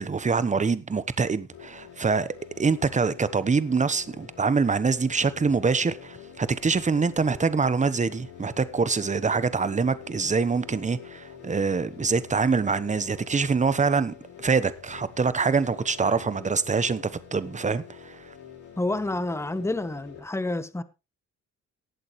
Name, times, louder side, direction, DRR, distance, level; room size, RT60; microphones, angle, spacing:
voice 1, 0.0-18.2, right 4 dB, 25° right, 1.1 m, -25 dB
sound 1, 1.5-20.2, left 8 dB, 80° left, 4.3 m, -46 dB
voice 2, 18.8-20.8, left 2 dB, 10° left, 1.2 m, -29 dB
19.0 x 8.3 x 3.2 m
cardioid pair, 90°, 30 cm